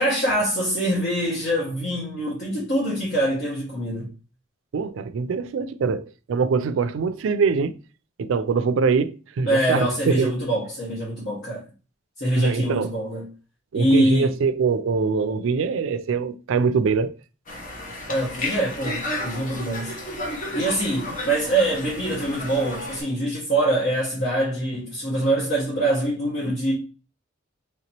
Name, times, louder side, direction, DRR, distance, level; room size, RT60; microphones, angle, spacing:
voice 1, 0.0-4.1 9.5-11.6 12.2-13.3 13.7-14.3 18.1-19.9 20.5-26.7, right 1 dB, 60° left, 1.3 m, -24 dB
voice 2, 4.7-7.8 8.2-10.3 12.4-13.0 13.7-17.1, right 5 dB, 85° right, 0.4 m, -23 dB
Conversation, 17.5-23.0, left 1 dB, 45° left, 0.9 m, -32 dB
3.2 x 2.9 x 2.9 m
head